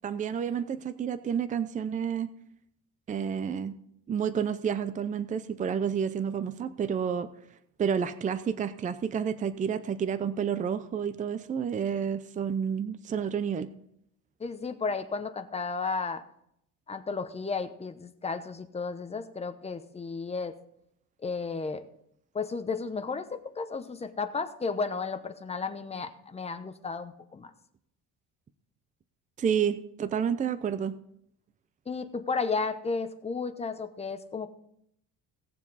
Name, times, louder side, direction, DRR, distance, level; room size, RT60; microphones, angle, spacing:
voice 1, 0.0-2.3 3.1-3.8 4.1-7.3 7.8-13.7 29.4-31.0, right 7 dB, 20° right, 13 dB, 0.5 m, -30 dB
voice 2, 14.4-16.2 16.9-20.5 21.2-21.8 22.3-27.5 31.9-34.5, left 4 dB, 20° left, 9 dB, 0.9 m, -33 dB
18.0 x 7.2 x 4.1 m, 0.73 s
cardioid pair, 145°, 34 cm